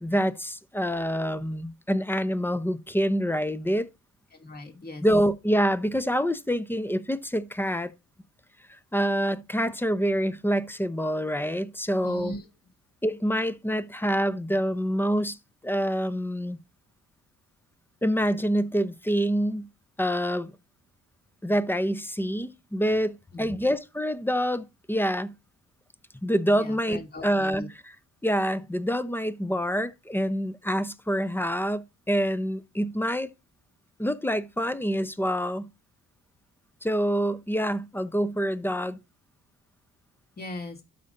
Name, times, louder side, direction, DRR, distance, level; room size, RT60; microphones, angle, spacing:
voice 1, 0.0-3.9 5.0-7.9 8.9-12.3 13.0-15.4 15.6-16.6 18.0-19.7 20.0-20.5 21.4-25.3 26.2-28.0 28.2-33.3 34.0-35.7 36.8-39.0, equal, 5° left, 0.8 m, -26 dB
voice 2, 4.4-5.0 12.0-12.4 23.3-23.7 26.6-27.7 40.4-40.8, left 1 dB, 30° left, 2.6 m, -39 dB
12.5 x 5.5 x 2.6 m
cardioid pair, 90°, 30 cm